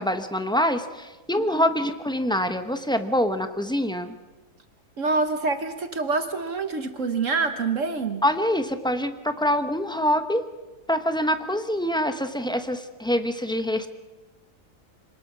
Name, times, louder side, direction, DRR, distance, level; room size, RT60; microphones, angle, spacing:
voice 1, 0.0-4.2 8.2-10.5 10.9-13.9, equal, 5° left, 8 dB, 0.7 m, -25 dB
voice 2, 1.4-1.7 5.0-8.2, right 4 dB, 50° right, 9 dB, 1.4 m, -26 dB
25.5 x 19.5 x 6.1 m, 1.2 s
omnidirectional pair, 1.8 m